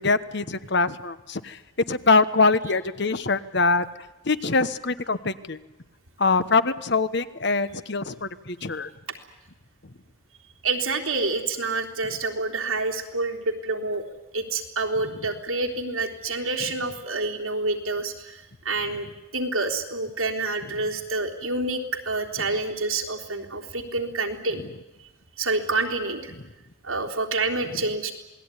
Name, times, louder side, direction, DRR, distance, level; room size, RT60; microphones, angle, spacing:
voice 1, 0.0-1.6 1.9-3.9 4.2-5.6 6.2-8.9, left 3 dB, 55° left, 13 dB, 1.2 m, -23 dB
voice 2, 10.6-14.0 14.3-19.1 19.3-24.6 25.4-26.3 26.8-28.1, right 3 dB, 90° right, 1 dB, 3.6 m, -28 dB
27.5 x 19.5 x 9.9 m, 1.0 s
head